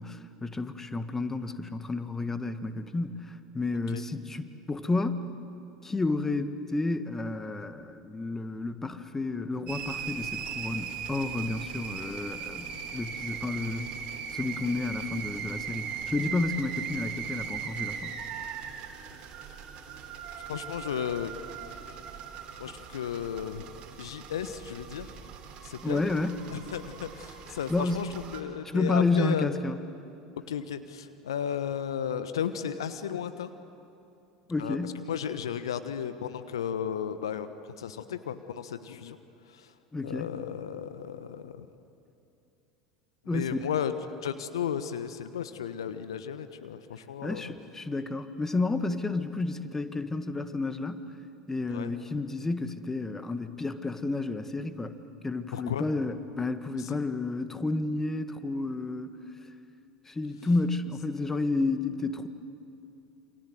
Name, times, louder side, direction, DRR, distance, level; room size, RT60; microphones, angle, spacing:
voice 1, 0.0-5.3 5.8-13.9 14.3-18.1 25.8-26.4 27.7-28.0 28.7-29.8 34.5-35.0 39.9-40.3 43.3-43.7 47.2-51.0 51.5-55.0 55.2-59.2 60.1-62.3, left 3 dB, 15° left, 10 dB, 1.6 m, -31 dB
sound 1, 9.7-28.4, right 7 dB, 45° right, 3.7 m, -39 dB
voice 2, 20.5-21.3 22.6-23.7 24.0-25.1 25.6-26.0 26.5-29.5 30.5-33.5 34.6-34.8 35.1-39.2 39.5-39.7 40.0-41.7 43.3-47.5 51.7-51.9 55.5-55.9 56.8-56.9, left 8 dB, 75° left, 11 dB, 1.2 m, -34 dB
28.0 x 26.5 x 7.9 m, 2.7 s
figure-of-eight pair, 75°, 3 cm